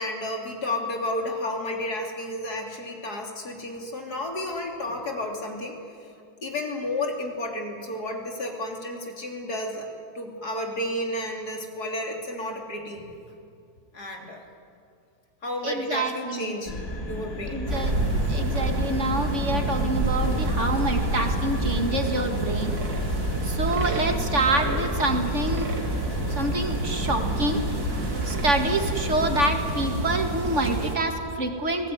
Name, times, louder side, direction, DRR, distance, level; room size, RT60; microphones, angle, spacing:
voice 1, 0.0-5.8 6.4-9.9 10.2-13.0 13.9-14.4 15.4-16.8 17.1-17.7, left 1 dB, 85° left, 1 dB, 3.7 m, -31 dB
voice 2, 15.6-16.5 17.5-17.9 18.3-22.8 23.4-25.7 26.3-27.6 27.9-31.9, right 1 dB, 50° right, 4 dB, 2.4 m, -27 dB
sound 1, 16.7-29.3, left 2 dB, 60° left, 3.5 m, -33 dB
sound 2, 17.7-31.0, right 2 dB, 75° right, 3.0 m, -28 dB
29.5 x 19.0 x 9.5 m, 2.4 s
omnidirectional pair, 1.6 m